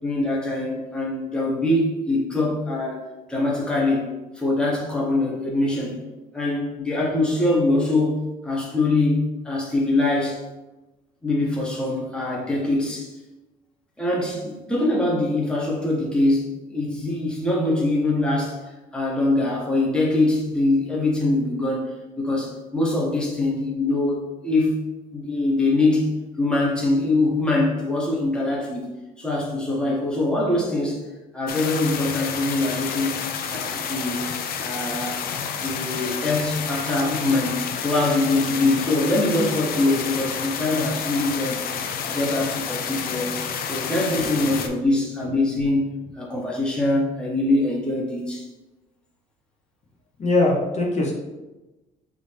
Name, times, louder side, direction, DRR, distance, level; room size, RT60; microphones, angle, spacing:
voice 1, 0.0-4.1 4.3-6.0 6.3-10.4 11.2-13.2 14.0-24.8 25.1-26.1 26.4-28.9 29.2-31.0 31.3-33.1 33.5-34.2 34.6-35.2 35.6-41.6 42.1-43.3 43.7-48.5, left 2 dB, 5° left, -4 dB, 1.0 m, -23 dB
sound 1, 31.5-44.7, left 7 dB, 60° left, 0.5 m, -30 dB
voice 2, 50.2-51.1, left 2 dB, 40° left, -2 dB, 1.0 m, -21 dB
4.8 x 2.7 x 3.4 m, 1.1 s
cardioid pair, 110°, 17 cm